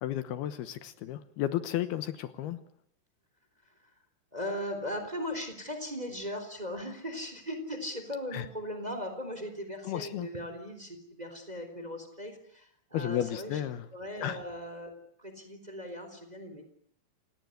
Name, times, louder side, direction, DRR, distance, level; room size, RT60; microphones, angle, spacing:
voice 1, 0.0-2.6 8.3-8.5 9.8-10.3 12.9-13.9 14.2-14.4, left 12 dB, 75° left, 11 dB, 3.0 m, -33 dB
voice 2, 4.3-13.6 13.9-14.9 15.2-16.7, left 1 dB, 10° right, 7 dB, 3.5 m, -38 dB
28.5 x 18.0 x 9.5 m, 0.71 s
omnidirectional pair, 4.7 m